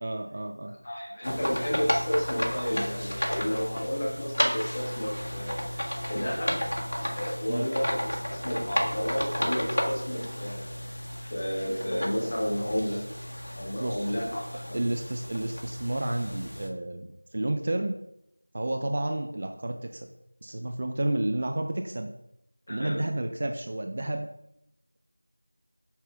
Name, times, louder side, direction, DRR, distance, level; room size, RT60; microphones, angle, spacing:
voice 1, 0.0-0.7 7.5-7.6 13.8-14.1 14.7-18.0 18.5-20.1 20.4-22.1 22.7-24.3, right 1 dB, 20° right, 5 dB, 0.3 m, -31 dB
voice 2, 0.8-5.5 6.0-6.6 7.1-13.0 13.6-14.8 22.7-23.0, equal, 20° left, -5 dB, 1.4 m, -31 dB
sound 1, 1.2-16.7, equal, 75° left, 1.6 m, -33 dB
8.5 x 5.5 x 3.5 m, 0.79 s
figure-of-eight pair, 180°, 0 cm